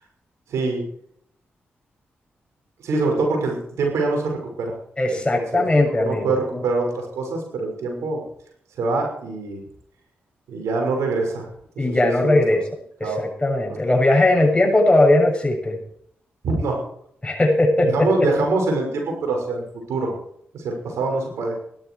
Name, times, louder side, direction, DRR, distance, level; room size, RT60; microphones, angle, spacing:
voice 1, 0.5-0.8 2.8-4.7 5.1-8.2 8.8-9.6 10.5-11.5 11.8-12.3 13.0-13.2 13.7-13.8 14.3-14.4 16.4-16.8 17.8-20.1 20.5-21.5, right 3 dB, 80° right, 2 dB, 6.0 m, -24 dB
voice 2, 5.0-6.6 11.8-12.6 13.0-15.8 17.2-18.1, left 1 dB, 20° left, 1 dB, 7.1 m, -19 dB
17.0 x 12.5 x 4.9 m, 0.68 s
supercardioid pair, 40°, 5 cm